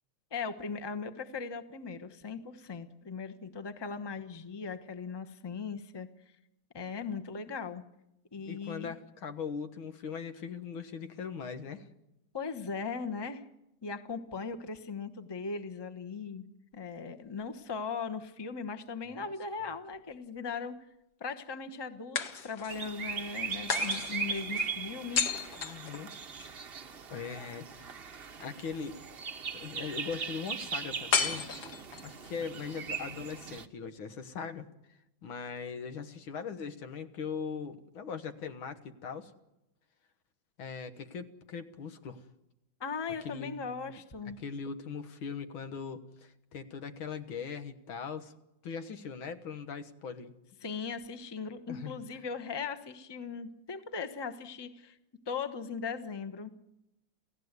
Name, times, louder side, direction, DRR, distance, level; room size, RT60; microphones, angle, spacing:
voice 1, 0.3-6.1 6.7-7.8 8.3-8.9 12.3-13.4 13.8-16.5 16.7-20.7 21.2-25.3 27.3-27.5 42.8-44.4 50.6-55.0 55.3-56.5, left 5 dB, 20° left, 7 dB, 0.8 m, -38 dB
voice 2, 8.5-11.9 25.6-26.1 27.1-28.0 28.4-29.0 29.5-31.5 32.0-34.7 35.2-39.3 40.6-42.2 43.2-43.8 44.4-48.3 48.6-50.3 51.7-52.0, left 6 dB, 90° left, 8 dB, 2.2 m, -40 dB
sound 1, 19.0-20.1 22.1-22.9 23.7-26.5 31.1-32.2, left 6 dB, 55° left, 1.8 m, -34 dB
sound 2, 22.7-33.7, right 5 dB, 45° right, 0.8 m, -39 dB
28.5 x 16.5 x 8.2 m, 0.90 s
omnidirectional pair, 2.2 m